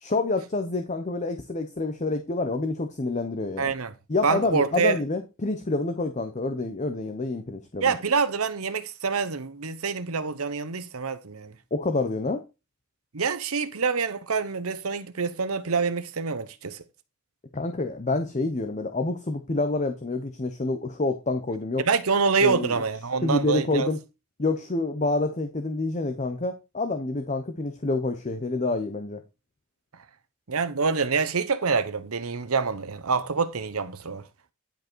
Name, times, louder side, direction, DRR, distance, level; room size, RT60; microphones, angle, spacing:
voice 1, 0.0-3.7 4.1-7.9 11.7-12.4 17.5-21.8 22.4-22.8 23.2-24.0 24.4-29.2, left 2 dB, 35° left, 0.8 m, -27 dB
voice 2, 3.6-3.9 4.2-5.0 7.8-11.6 13.1-16.8 21.8-23.9 30.5-34.3, right 5 dB, 90° right, 1.0 m, -26 dB
10.5 x 5.2 x 4.5 m
head